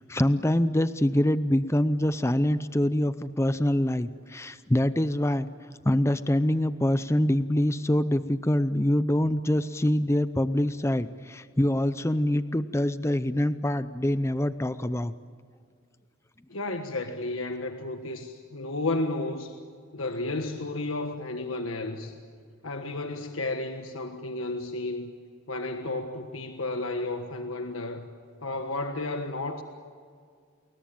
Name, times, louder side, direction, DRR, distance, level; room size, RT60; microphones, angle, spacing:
voice 1, 0.0-5.5 5.8-15.1, left 1 dB, 15° left, 12 dB, 0.6 m, -25 dB
voice 2, 16.5-19.6 19.9-22.2 22.6-25.1 25.5-28.1 28.4-29.6, left 2 dB, 75° left, 5 dB, 1.5 m, -32 dB
30.0 x 21.5 x 8.8 m, 2.2 s
head